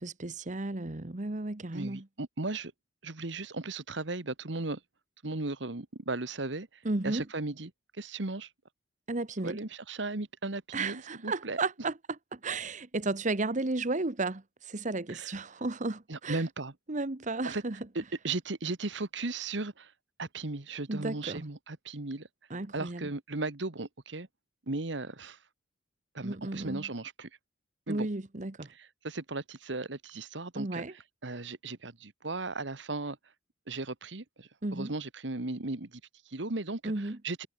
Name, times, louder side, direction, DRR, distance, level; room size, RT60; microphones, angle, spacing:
voice 1, 0.0-2.1 6.8-7.3 9.1-9.6 10.7-11.9 12.3-16.4 16.9-17.8 20.9-21.5 22.5-23.1 26.2-26.9 27.9-28.7 30.5-30.9 34.6-34.9 36.8-37.2, right 2 dB, 40° right, 1.2 m, -33 dB
voice 2, 1.7-2.7 3.0-4.8 5.2-8.5 9.4-11.6 15.1-15.3 16.1-16.7 17.4-17.6 17.9-19.9 20.2-22.3 22.7-24.3 24.7-25.4 26.1-27.3 27.9-28.1 28.7-30.8 31.2-33.2 33.7-37.5, right 3 dB, 70° right, 1.6 m, -36 dB
head